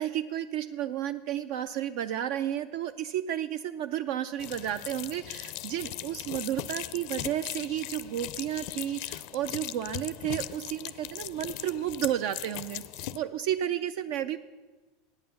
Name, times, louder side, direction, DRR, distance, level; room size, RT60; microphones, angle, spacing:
voice 1, 0.0-14.4, right 11 dB, 65° right, 10 dB, 0.3 m, -32 dB
sound 1, 4.4-13.2, left 14 dB, 65° left, 0.4 m, -39 dB
8.7 x 8.3 x 7.0 m, 1.3 s
hypercardioid pair, 100°, 0 cm